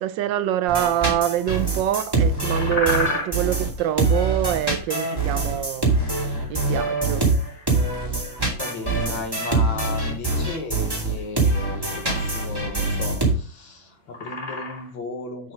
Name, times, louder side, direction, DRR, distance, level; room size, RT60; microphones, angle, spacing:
voice 1, 0.0-5.9 6.2-7.3, right 11 dB, 70° right, 1.3 m, -25 dB
sound 1, 0.7-13.3, right 3 dB, 10° right, 2.4 m, -24 dB
sound 2, 2.1-14.9, left 2 dB, 35° left, 2.1 m, -34 dB
voice 2, 8.5-15.5, left 3 dB, 75° left, 2.0 m, -35 dB
7.5 x 7.4 x 3.7 m
omnidirectional pair, 2.2 m